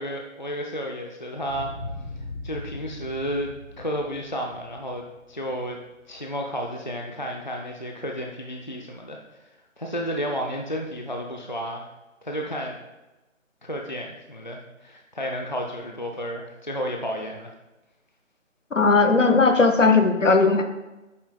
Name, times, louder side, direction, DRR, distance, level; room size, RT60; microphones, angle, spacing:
voice 1, 0.0-1.7 2.4-5.8 6.1-9.2 9.8-11.9 12.2-12.8 13.6-17.5, equal, 35° left, 1 dB, 0.5 m, -32 dB
sound 1, 1.4-6.0, left 2 dB, 15° left, 1.0 m, -39 dB
voice 2, 18.7-20.6, left 3 dB, 65° left, 7 dB, 0.9 m, -18 dB
9.6 x 7.1 x 2.2 m, 1.1 s
figure-of-eight pair, 160°, 40 cm